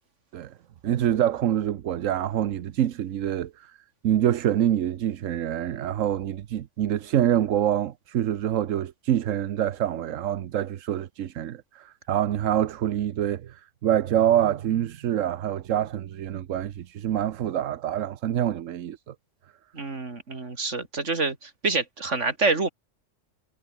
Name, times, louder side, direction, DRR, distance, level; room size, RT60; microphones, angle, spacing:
voice 1, 0.8-3.8 4.0-19.1, right 11 dB, 85° right, 1.2 m, -26 dB
voice 2, 19.7-22.7, right 3 dB, 70° right, 3.3 m, -27 dB
omnidirectional pair, 1.3 m